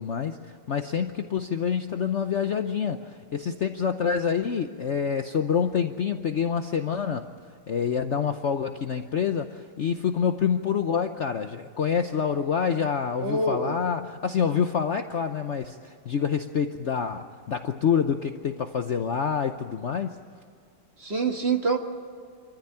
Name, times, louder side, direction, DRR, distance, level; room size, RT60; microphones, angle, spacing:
voice 1, 0.0-7.3 7.7-20.2, left 7 dB, 80° left, 7 dB, 0.6 m, -27 dB
voice 2, 13.2-13.8 21.0-21.8, right 3 dB, 30° right, 4 dB, 1.7 m, -26 dB
26.5 x 14.0 x 9.9 m, 2.3 s
omnidirectional pair, 2.3 m